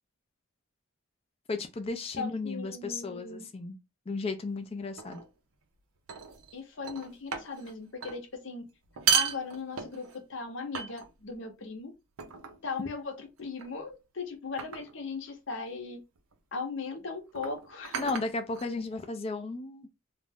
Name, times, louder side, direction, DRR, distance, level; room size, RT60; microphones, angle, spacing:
voice 1, 1.5-3.8 4.1-5.2 17.9-19.9, left 3 dB, 30° left, 0.3 m, -34 dB
voice 2, 2.2-3.4 6.5-8.7 9.1-11.9 12.6-16.0 16.5-18.1, left 4 dB, 65° left, 0.7 m, -38 dB
sound 1, 5.0-5.3 6.1-6.5 6.8-7.7 8.0-8.2 8.8-10.2 10.7-11.3 12.2-12.6 13.6-13.9 14.6-15.0 16.2-16.3 17.3-19.0, right 6 dB, 85° right, 0.6 m, -33 dB
2.4 x 2.1 x 3.5 m
head